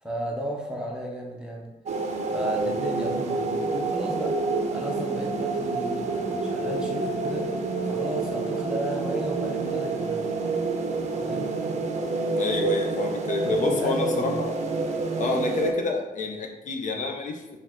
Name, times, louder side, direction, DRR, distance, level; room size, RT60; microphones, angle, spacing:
voice 1, 0.0-1.7 2.3-4.4 4.7-7.5 7.8-10.3 11.2-11.6 13.4-14.4, right 1 dB, 5° right, -2 dB, 0.6 m, -34 dB
sound 1, 1.9-15.7, right 3 dB, 50° right, 0.5 m, -28 dB
voice 2, 12.4-14.5 15.2-17.4, left 3 dB, 55° left, 2 dB, 0.6 m, -28 dB
4.9 x 2.3 x 3.6 m, 1.0 s
wide cardioid pair, 145°, 15 cm